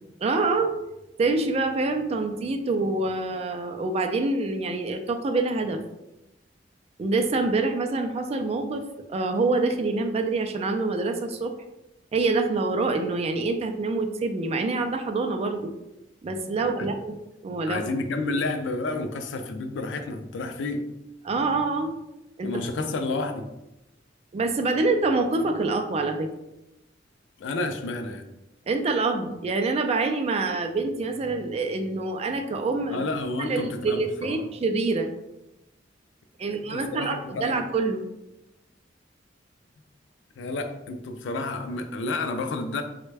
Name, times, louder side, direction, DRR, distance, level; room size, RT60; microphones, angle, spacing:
voice 1, 0.2-0.7 1.2-5.8 7.0-8.8 9.1-11.5 12.1-15.7 16.2-17.2 17.4-17.8 21.2-21.9 22.4-22.5 24.3-26.3 28.7-33.0 33.4-35.1 36.4-38.0, right 3 dB, 35° right, 6 dB, 0.3 m, -26 dB
voice 2, 17.7-20.9 22.4-23.5 27.4-28.3 32.9-34.4 36.4-37.7 40.4-42.8, left 2 dB, 70° left, 6 dB, 0.4 m, -30 dB
3.3 x 2.1 x 3.2 m, 0.92 s
head